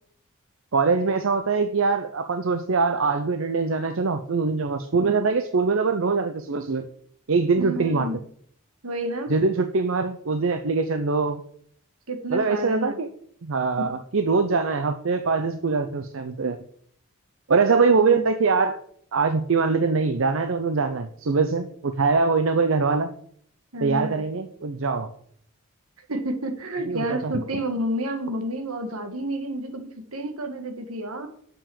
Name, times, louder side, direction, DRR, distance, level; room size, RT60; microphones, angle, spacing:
voice 1, 0.7-6.9 7.3-8.1 9.3-11.4 12.3-13.1 13.4-16.6 17.5-18.8 19.1-23.1 23.8-25.1 26.9-27.3, right 4 dB, 60° right, 8 dB, 0.6 m, -23 dB
voice 2, 7.6-8.2 8.8-9.3 12.1-13.0 13.8-13.9 17.9-18.3 23.7-24.2 26.0-31.3, right 1 dB, 75° right, 7 dB, 1.6 m, -30 dB
7.1 x 6.0 x 7.0 m, 0.62 s
head